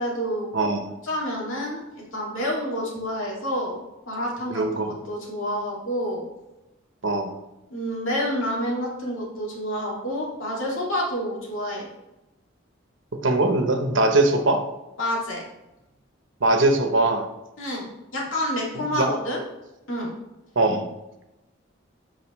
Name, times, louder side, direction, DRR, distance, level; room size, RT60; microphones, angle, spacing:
voice 1, 0.0-0.5 1.0-6.3 7.7-11.9 15.0-15.4 17.6-17.9 18.1-19.4 19.9-20.1, equal, 85° left, -3 dB, 2.5 m, -28 dB
voice 2, 0.5-0.9 4.5-4.9 7.0-7.3 13.2-14.6 16.4-17.3 18.9-19.1 20.6-20.9, right 2 dB, 70° right, 6 dB, 0.9 m, -21 dB
8.6 x 5.6 x 3.2 m, 0.97 s
head